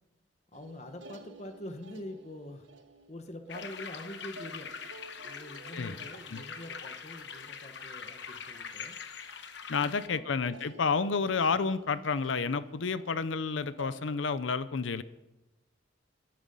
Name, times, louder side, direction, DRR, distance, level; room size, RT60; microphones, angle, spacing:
voice 1, 0.5-2.7 3.1-4.7 5.2-8.9 9.7-10.3, left 1 dB, 35° left, 7 dB, 1.1 m, -45 dB
sound 1, 0.5-9.3 9.6-10.0 10.4-14.0, right 2 dB, 80° right, 1.4 m, -53 dB
sound 2, 3.5-10.1, left 6 dB, 65° left, 1.0 m, -43 dB
voice 2, 9.7-15.0, left 5 dB, 80° left, 15 dB, 0.6 m, -30 dB
20.5 x 10.5 x 5.4 m, 1.0 s
head